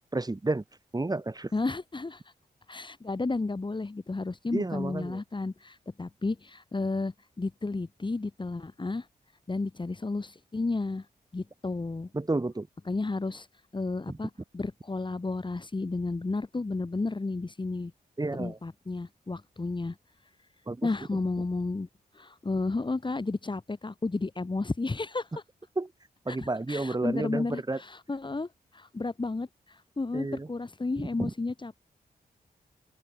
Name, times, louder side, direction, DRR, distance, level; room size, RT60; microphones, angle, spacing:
voice 1, 0.1-0.6 0.9-1.5 4.5-5.2 12.1-12.7 14.1-14.2 18.2-18.6 20.7-20.9 25.8-25.9 26.3-27.8 30.1-30.5 31.0-31.3, right 2 dB, 25° right, 4.5 m, -31 dB
voice 2, 1.5-2.2 2.7-9.1 9.5-11.1 11.3-12.1 12.9-13.5 13.7-17.9 18.3-19.9 20.8-21.9 22.1-25.3 26.3-31.8, left 3 dB, 30° left, 3.1 m, -32 dB
open air
cardioid pair, 75°, 16 cm